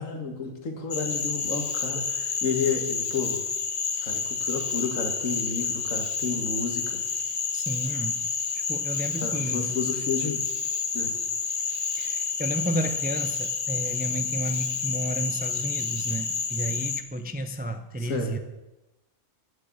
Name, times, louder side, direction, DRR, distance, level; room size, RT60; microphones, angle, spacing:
voice 1, 0.0-3.4 4.0-7.0 9.2-10.4 10.9-11.1 18.0-18.4, left 4 dB, 80° left, 4 dB, 2.0 m, -31 dB
Cricket / Frog, 0.9-17.0, left 5 dB, 35° left, 0.7 m, -29 dB
voice 2, 7.5-8.3 8.7-9.8 11.9-18.4, right 1 dB, 15° right, 8 dB, 0.3 m, -32 dB
10.0 x 7.4 x 8.8 m, 1.0 s
omnidirectional pair, 1.3 m